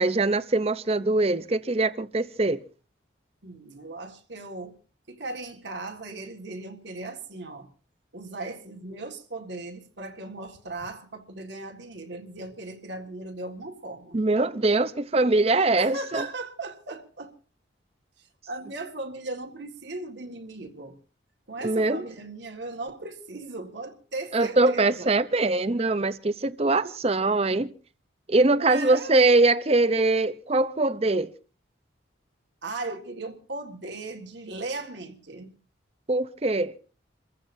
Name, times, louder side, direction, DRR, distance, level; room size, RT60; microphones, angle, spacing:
voice 1, 0.0-2.6 14.1-16.3 21.6-22.0 24.3-27.7 28.3-31.3 36.1-36.7, right 2 dB, 30° right, 0.7 m, -22 dB
voice 2, 3.4-4.8 5.1-7.7 8.1-14.2 15.8-17.4 18.2-21.0 21.5-25.1 26.6-26.9 28.6-29.1 32.6-35.5, right 2 dB, 65° right, 1.8 m, -37 dB
28.5 x 15.0 x 2.7 m
head